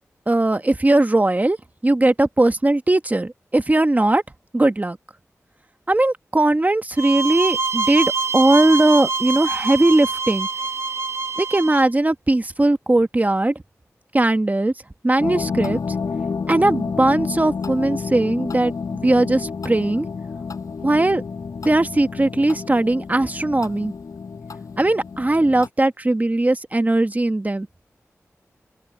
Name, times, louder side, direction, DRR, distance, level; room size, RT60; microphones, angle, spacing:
voice 1, 0.3-1.6 1.8-4.2 4.5-5.0 5.9-10.5 11.4-13.5 14.1-14.7 15.0-15.8 16.5-20.1 20.8-21.2 21.6-23.9 24.8-27.7, right 2 dB, 30° right, 1.4 m, -19 dB
sound 1, 7.0-11.9, right 4 dB, 55° right, 1.6 m, -25 dB
sound 2, 15.2-25.7, left 5 dB, 85° left, 6.6 m, -30 dB
open air
cardioid pair, 45°, 6 cm